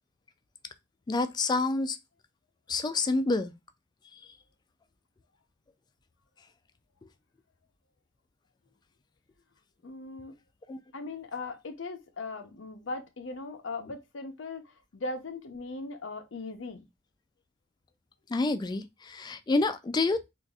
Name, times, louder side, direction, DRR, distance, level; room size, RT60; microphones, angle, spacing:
voice 1, 1.1-2.0 2.7-3.5 10.7-10.8 18.3-20.3, left 3 dB, 20° left, 0.3 m, -28 dB
voice 2, 9.8-10.3 10.9-16.8, left 3 dB, 90° left, 0.7 m, -39 dB
3.9 x 2.5 x 2.3 m
head